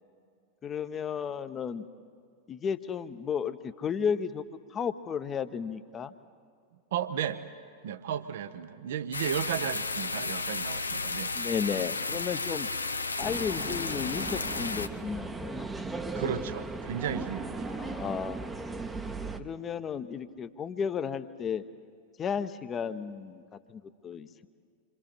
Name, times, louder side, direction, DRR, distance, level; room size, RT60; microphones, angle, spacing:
voice 1, 0.6-1.8 2.5-4.4 4.7-6.1 11.3-12.7 13.2-15.7 17.8-18.5 19.4-21.6 22.2-23.4 23.7-24.5, left 7 dB, 25° left, 12 dB, 0.9 m, -33 dB
voice 2, 6.9-7.4 7.8-11.3 16.2-17.8, right 9 dB, 55° right, 12 dB, 0.8 m, -34 dB
sound 1, 9.1-14.9, left 3 dB, 80° left, 0.7 m, -33 dB
sound 2, 13.2-19.4, right 3 dB, 10° right, 0.9 m, -37 dB
28.0 x 24.5 x 4.4 m, 2.3 s
figure-of-eight pair, 90°, 0 cm